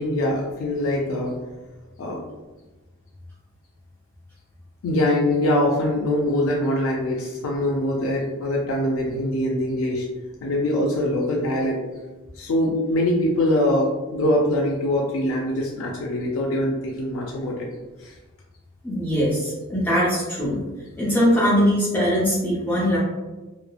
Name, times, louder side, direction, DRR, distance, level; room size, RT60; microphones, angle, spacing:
voice 1, 0.0-1.3 2.0-2.2 4.8-10.1 10.4-11.8 12.4-17.7 18.0-18.1, left 1 dB, 75° left, -1 dB, 0.4 m, -23 dB
voice 2, 18.8-20.6 21.0-23.0, equal, 10° left, -9 dB, 0.5 m, -21 dB
3.0 x 2.0 x 2.2 m, 1.2 s
head